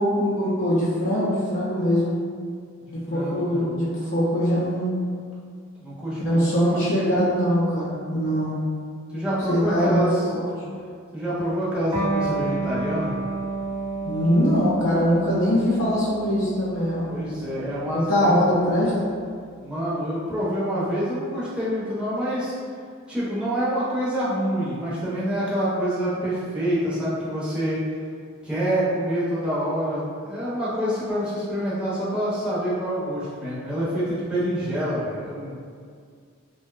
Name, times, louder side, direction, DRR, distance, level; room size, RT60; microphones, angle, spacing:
voice 1, 0.0-2.1 2.9-5.0 6.2-8.6 9.5-10.5 14.0-17.0 17.9-18.9, equal, 60° left, -8 dB, 0.5 m, -22 dB
voice 2, 3.1-3.7 5.8-7.2 9.1-10.2 11.1-13.1 17.0-18.4 19.6-22.5 23.1-27.8 28.4-35.6, equal, 5° right, -10 dB, 0.6 m, -27 dB
Electric guitar, 11.9-19.1, right 3 dB, 85° right, 0.8 m, -31 dB
2.5 x 2.1 x 2.3 m, 2.1 s
head